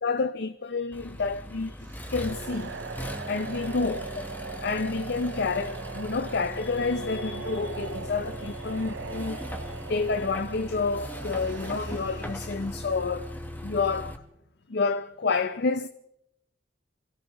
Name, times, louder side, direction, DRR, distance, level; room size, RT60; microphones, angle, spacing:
voice 1, 0.0-1.8 2.1-2.8 3.3-4.1 4.6-13.3 13.6-14.1 14.7-15.9, left 4 dB, 60° left, 0.6 m, -29 dB
Accelerating revving vroom, 0.9-14.2, equal, 10° left, 1.2 m, -39 dB
sound 1, 1.8-13.0, right 5 dB, 75° right, 0.6 m, -41 dB
27.5 x 17.0 x 3.0 m
head